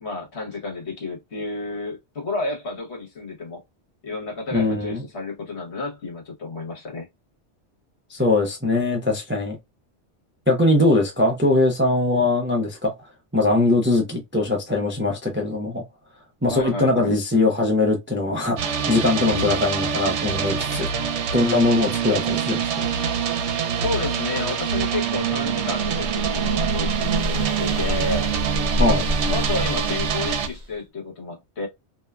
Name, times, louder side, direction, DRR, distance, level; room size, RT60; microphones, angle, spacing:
voice 1, 0.0-3.6 4.0-7.1 16.5-17.1 19.2-19.5 23.8-28.3 29.3-31.7, left 3 dB, 70° left, 1.3 m, -31 dB
voice 2, 4.5-5.0 8.1-9.6 10.5-12.9 13.3-15.8 16.4-22.9 28.8-29.0, left 2 dB, 15° right, 0.4 m, -21 dB
sound 1, 18.6-30.5, right 7 dB, 75° right, 0.9 m, -25 dB
sound 2, 25.4-30.7, left 1 dB, 45° right, 0.8 m, -28 dB
2.7 x 2.2 x 2.2 m
omnidirectional pair, 1.2 m